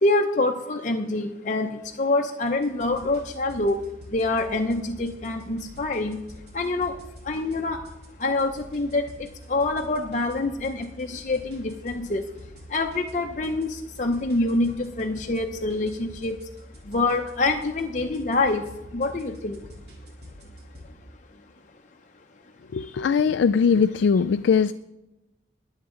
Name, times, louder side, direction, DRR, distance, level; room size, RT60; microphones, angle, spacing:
voice 1, 0.0-6.2 6.5-7.9 8.2-12.3 12.7-16.5 16.8-19.7 22.7-23.0, left 2 dB, 40° left, 0.7 m, -26 dB
sound 1, 2.5-20.9, equal, 60° right, 3.4 m, -46 dB
voice 2, 22.7-24.7, left 6 dB, 75° left, 0.3 m, -20 dB
21.0 x 8.1 x 3.8 m
head